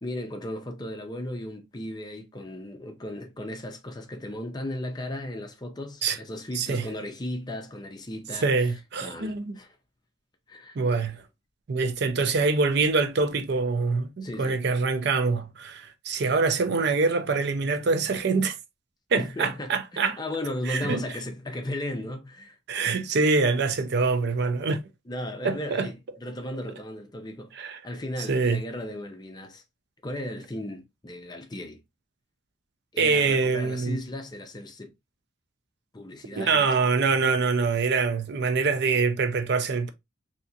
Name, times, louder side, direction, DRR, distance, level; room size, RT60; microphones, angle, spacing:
voice 1, 0.0-8.7 9.0-9.7 10.5-11.0 14.2-14.6 19.1-22.6 25.1-27.5 27.8-29.6 30.0-31.8 32.9-34.9 35.9-36.7, left 1 dB, 20° left, 0.5 m, -36 dB
voice 2, 8.4-9.6 10.8-11.2 11.7-18.6 19.1-20.2 20.7-21.0 22.7-24.8 25.4-25.9 27.6-27.8 28.3-28.6 33.0-34.0 36.4-39.9, right 4 dB, 55° right, 0.4 m, -24 dB
3.3 x 2.8 x 2.6 m
head